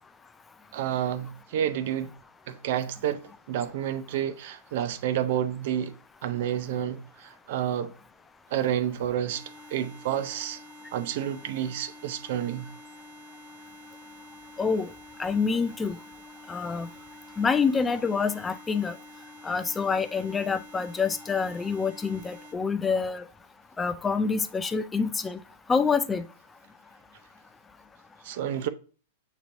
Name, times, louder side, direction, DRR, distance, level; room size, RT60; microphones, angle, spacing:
voice 1, 0.7-2.1 2.5-3.2 3.5-5.9 6.2-7.9 8.5-9.4 9.7-10.6 10.9-12.7 28.2-28.7, right 10 dB, 60° right, 0.4 m, -29 dB
sound 1, 9.3-22.5, left 2 dB, 85° right, 1.4 m, -48 dB
voice 2, 14.6-14.9 15.2-16.0 16.5-16.9 17.4-18.9 19.4-23.2 23.8-25.4 25.7-26.2, left 5 dB, 10° left, 0.3 m, -26 dB
6.6 x 3.0 x 2.5 m
hypercardioid pair, 150°, 0 cm